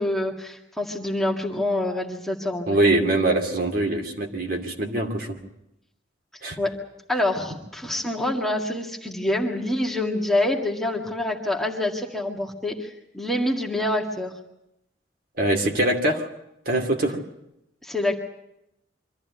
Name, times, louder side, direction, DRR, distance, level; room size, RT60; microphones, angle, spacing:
voice 1, 0.0-3.1 6.6-6.7 7.1-14.3 17.8-18.2, left 1 dB, ahead, -1 dB, 2.0 m, -26 dB
voice 2, 2.7-5.4 6.4-6.6 15.4-16.3 16.7-17.2, right 2 dB, 50° right, 2 dB, 2.5 m, -23 dB
25.0 x 14.0 x 9.5 m, 0.84 s
head